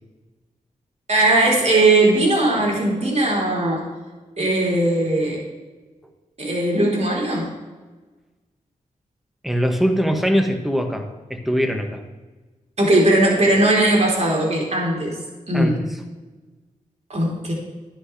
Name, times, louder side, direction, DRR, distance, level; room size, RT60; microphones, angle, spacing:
voice 1, 1.1-3.8 4.4-5.4 6.4-7.5 12.8-15.1 15.5-15.8 17.1-17.5, right 2 dB, 50° right, -3 dB, 4.2 m, -18 dB
voice 2, 9.4-12.0 15.5-16.0, equal, ahead, 5 dB, 1.7 m, -22 dB
12.0 x 11.0 x 3.5 m, 1.3 s
cardioid pair, 45°, 14 cm